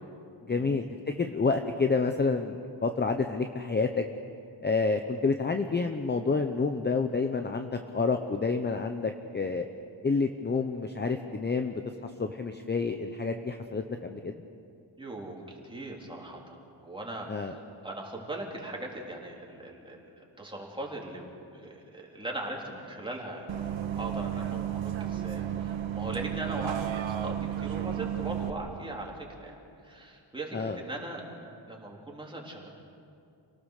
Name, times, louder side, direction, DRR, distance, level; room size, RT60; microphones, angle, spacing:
voice 1, 0.5-0.8 1.2-4.0 4.6-9.6 10.0-14.3 17.3-17.5 30.5-30.8, left 4 dB, 25° left, 6 dB, 0.8 m, -29 dB
voice 2, 15.0-21.2 21.5-32.7, right 1 dB, 10° right, -2 dB, 3.5 m, -40 dB
Bus, 23.5-28.5, right 10 dB, 85° right, 1.5 m, -33 dB
29.0 x 18.5 x 6.7 m, 2.5 s
wide cardioid pair, 155°, 46 cm